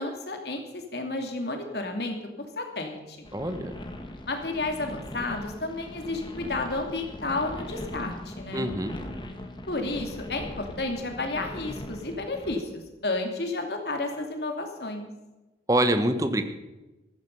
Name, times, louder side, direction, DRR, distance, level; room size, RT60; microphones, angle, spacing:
voice 1, 0.0-2.2 2.6-3.2 4.3-8.7 9.7-15.1, left 2 dB, 70° left, 3 dB, 2.8 m, -32 dB
sound 1, 3.3-12.6, left 1 dB, 25° left, 1.6 m, -40 dB
voice 2, 3.3-3.7 8.5-9.0 15.7-16.4, right 1 dB, 20° right, 9 dB, 1.2 m, -25 dB
15.0 x 14.0 x 5.5 m, 1.1 s
head